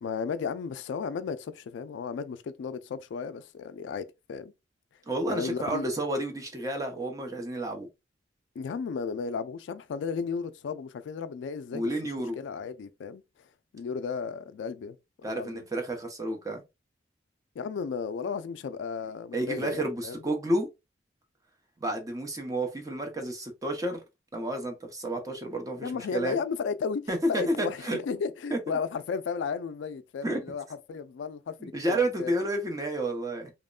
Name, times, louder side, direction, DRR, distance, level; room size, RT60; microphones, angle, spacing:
voice 1, 0.0-4.5 5.3-5.9 8.6-11.9 12.4-13.2 13.7-15.7 17.6-20.2 25.8-32.3, left 5 dB, 75° left, 0.3 m, -34 dB
voice 2, 5.1-7.9 11.7-12.4 15.2-16.6 19.3-20.7 21.8-24.0 24.3-26.4 27.1-28.0 28.5-28.8 30.2-30.4 31.6-33.5, right 1 dB, 20° right, 0.6 m, -30 dB
3.0 x 2.1 x 2.3 m
head